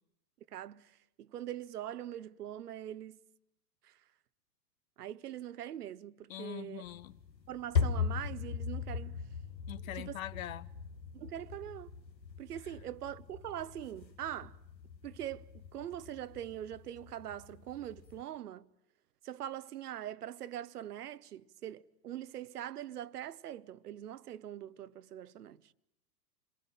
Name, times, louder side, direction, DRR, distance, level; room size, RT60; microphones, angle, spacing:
voice 1, 0.5-0.9 1.2-3.2 5.0-6.8 7.5-9.2 10.0-10.2 11.1-11.9 12.4-14.6 15.0-18.6 19.2-25.6, right 11 dB, 65° right, 1.0 m, -42 dB
voice 2, 6.3-7.1 9.7-10.7, left 13 dB, 55° left, 1.0 m, -43 dB
sound 1, 6.8-18.2, left 6 dB, 85° left, 1.6 m, -39 dB
27.5 x 22.0 x 9.0 m
figure-of-eight pair, 105°, 50 cm